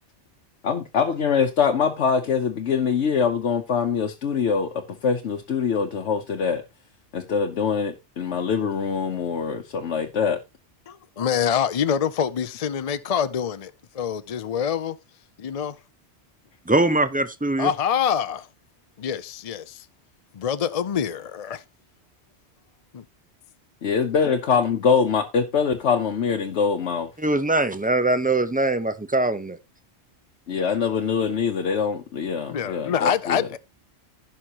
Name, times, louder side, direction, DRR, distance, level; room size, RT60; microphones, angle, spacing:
voice 1, 0.6-6.6 7.1-10.4 23.8-27.1 30.5-33.6, left 6 dB, 80° left, 1.2 m, -24 dB
voice 2, 10.9-15.0 15.4-15.8 17.6-18.5 19.0-19.8 20.3-21.6 22.9-23.0 32.5-33.6, left 8 dB, 45° left, 0.5 m, -25 dB
voice 3, 16.7-17.7 27.2-29.6, right 2 dB, 10° right, 0.6 m, -22 dB
16.0 x 5.8 x 2.9 m
omnidirectional pair, 1.2 m